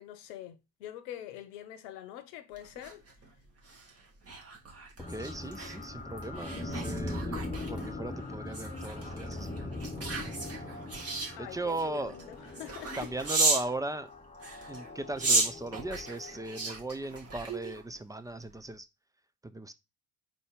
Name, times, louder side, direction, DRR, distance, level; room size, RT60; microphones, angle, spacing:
voice 1, 0.0-3.0 11.4-13.1, left 12 dB, 70° left, 0.9 m, -45 dB
sound 1, 2.6-13.7 14.3-18.0 18.4-18.6, right 3 dB, 30° right, 2.1 m, -35 dB
sound 2, 5.0-17.0, left 2 dB, 15° left, 1.1 m, -41 dB
voice 2, 5.1-7.4 7.7-9.7 10.1-11.0 11.4-12.1 13.0-14.1 14.7-18.9 19.4-19.7, right 2 dB, 10° right, 0.4 m, -38 dB
4.4 x 4.2 x 4.9 m
hypercardioid pair, 55°, 49 cm